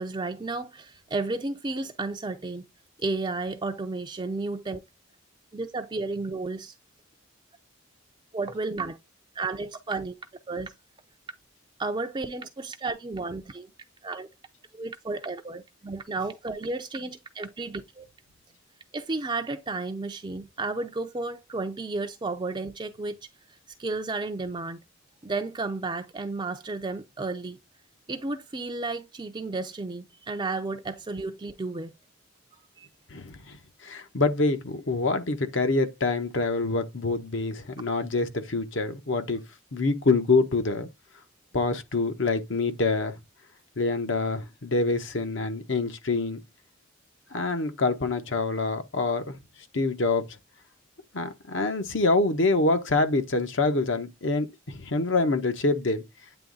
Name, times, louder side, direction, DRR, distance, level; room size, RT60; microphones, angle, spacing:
voice 1, 0.0-2.7 3.0-4.8 5.5-6.7 8.3-9.0 9.3-10.1 10.5-10.7 11.8-13.7 14.0-14.3 14.7-18.1 18.9-23.2 23.8-24.8 25.2-27.6 28.1-31.9 32.8-32.9, right 3 dB, 25° right, 0.4 m, -32 dB
voice 2, 33.1-33.6 33.8-39.4 39.7-40.9 41.5-43.1 43.8-46.4 47.3-49.4 49.7-50.2 51.1-56.0, left 3 dB, 65° left, 1.0 m, -26 dB
9.0 x 3.1 x 3.8 m
head